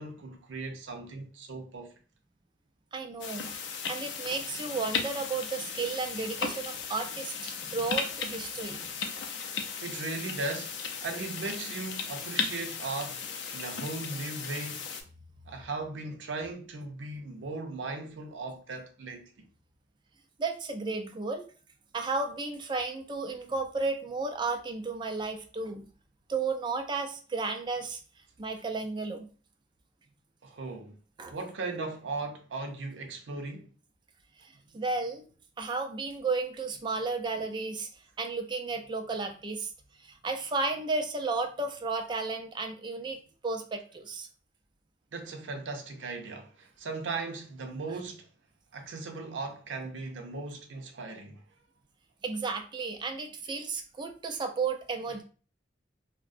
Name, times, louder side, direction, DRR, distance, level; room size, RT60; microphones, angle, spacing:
voice 1, 0.0-1.9 9.8-13.3 13.5-14.9 15.5-19.5 30.4-31.0 31.3-33.7 45.1-48.3 48.7-51.4, right 3 dB, 90° right, 0.5 m, -38 dB
voice 2, 2.9-3.5 3.9-9.0 20.4-21.4 21.9-25.9 26.3-28.0 28.4-29.3 31.2-31.3 34.4-35.2 35.6-37.9 38.2-39.7 40.0-44.3 52.2-55.2, right 3 dB, 25° right, 0.3 m, -33 dB
sound 1, 3.2-15.0, left 6 dB, 70° left, 0.4 m, -36 dB
2.6 x 2.1 x 2.4 m
head